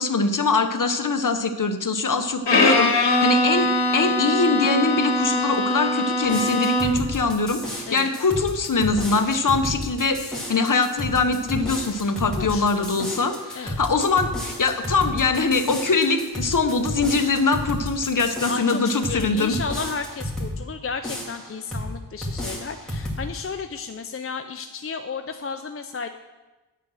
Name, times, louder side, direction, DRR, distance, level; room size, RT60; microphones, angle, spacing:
voice 1, 0.0-3.7 3.9-19.5, left 4 dB, 50° left, 7 dB, 0.9 m, -23 dB
Bowed string instrument, 2.5-7.1, left 2 dB, 90° left, 1.3 m, -21 dB
sound 1, 6.2-20.6 21.0-21.9 22.2-23.2, left 1 dB, ahead, 2.4 m, -32 dB
voice 2, 12.4-12.9 13.5-13.8 18.5-26.1, left 5 dB, 35° left, 7 dB, 0.4 m, -33 dB
8.8 x 6.8 x 6.2 m, 1.1 s
wide cardioid pair, 80°, 40 cm